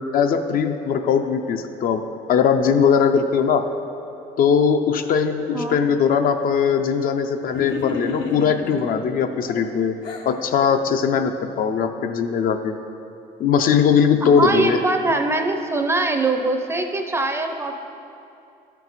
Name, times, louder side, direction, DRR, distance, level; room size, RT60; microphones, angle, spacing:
voice 1, 0.0-2.0 2.3-3.7 4.4-10.0 10.3-12.7 13.4-14.8, left 7 dB, 55° left, 7 dB, 0.5 m, -20 dB
sound 1, 7.5-8.8 9.5-10.3, left 3 dB, 90° left, 1.0 m, -31 dB
voice 2, 14.2-17.8, right 2 dB, 15° right, 5 dB, 0.5 m, -22 dB
12.0 x 4.5 x 4.1 m, 2.7 s
cardioid pair, 110°, 17 cm